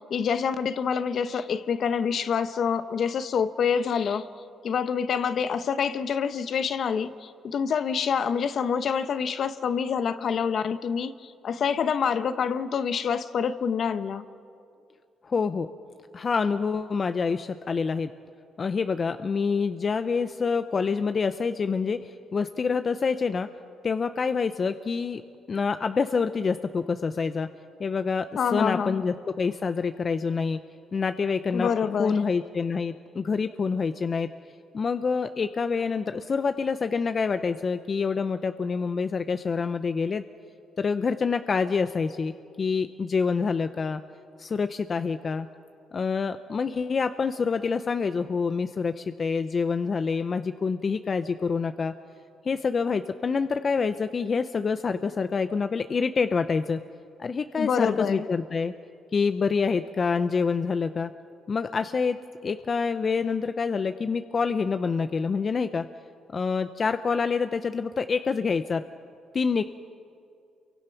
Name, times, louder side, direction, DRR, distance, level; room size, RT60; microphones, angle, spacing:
voice 1, 0.0-4.3 4.6-14.2 28.4-29.0 31.5-32.2 57.6-58.2, left 6 dB, 60° left, 1.0 m, -27 dB
voice 2, 15.2-15.7 16.1-18.1 18.6-23.5 23.8-25.2 25.5-27.5 27.8-30.6 30.9-31.7 32.0-34.3 34.7-40.2 40.8-44.0 44.4-45.5 45.9-51.9 52.4-56.8 57.2-58.7 59.1-61.1 61.5-62.2 62.4-65.8 66.3-68.8 69.3-69.6, left 5 dB, 40° left, 0.7 m, -27 dB
28.5 x 24.0 x 5.9 m
cardioid pair, 90°, 0 cm